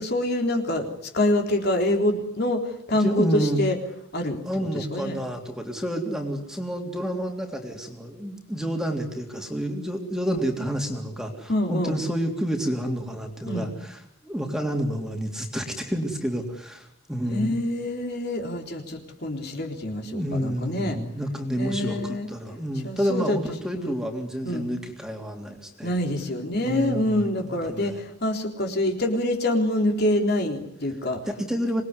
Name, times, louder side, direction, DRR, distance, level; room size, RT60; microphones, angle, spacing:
voice 1, 0.0-3.8 4.1-5.2 11.5-12.0 13.5-13.7 17.3-21.0 21.6-22.3 22.8-23.4 23.7-24.0 24.4-24.7 25.8-31.2, left 1 dB, 50° left, 3 dB, 3.7 m, -26 dB
voice 2, 2.9-3.6 4.5-17.6 20.0-25.9 26.6-28.0 31.3-31.8, equal, 5° right, 2 dB, 3.3 m, -29 dB
27.0 x 20.5 x 9.8 m, 0.72 s
head